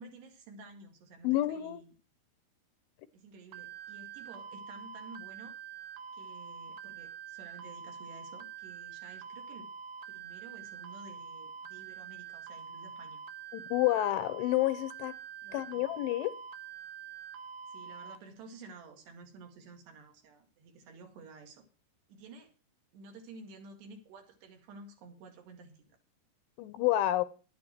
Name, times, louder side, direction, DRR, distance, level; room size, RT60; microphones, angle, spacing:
voice 1, 0.0-1.9 3.1-5.6 6.1-9.7 10.1-13.2 15.4-15.9 17.7-21.7 22.1-22.5 22.9-26.0, right 3 dB, 65° right, 4.1 m, -52 dB
voice 2, 1.2-1.8 13.5-15.1 15.5-16.3 26.6-27.2, left 15 dB, 85° left, 3.3 m, -29 dB
sound 1, 3.5-18.2, right 7 dB, 85° right, 3.6 m, -46 dB
11.5 x 10.5 x 4.4 m
omnidirectional pair, 5.4 m